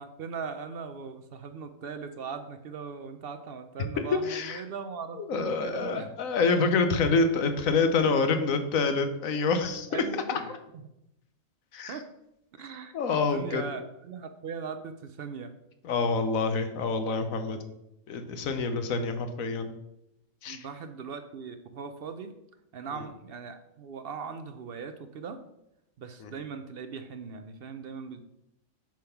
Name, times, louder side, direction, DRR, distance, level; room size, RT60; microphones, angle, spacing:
voice 1, 0.0-6.1 9.9-10.5 11.9-12.1 12.5-15.6 20.5-22.3 22.7-25.4 26.0-28.2, right 5 dB, 60° right, 8 dB, 0.7 m, -39 dB
voice 2, 4.0-4.6 5.2-9.9 10.3-10.4 11.7-11.9 12.9-13.6 15.8-17.6 18.1-19.7 20.4-20.6 26.2-26.3, left 4 dB, 80° left, 8 dB, 1.2 m, -27 dB
7.5 x 3.6 x 5.8 m, 0.83 s
omnidirectional pair, 1.4 m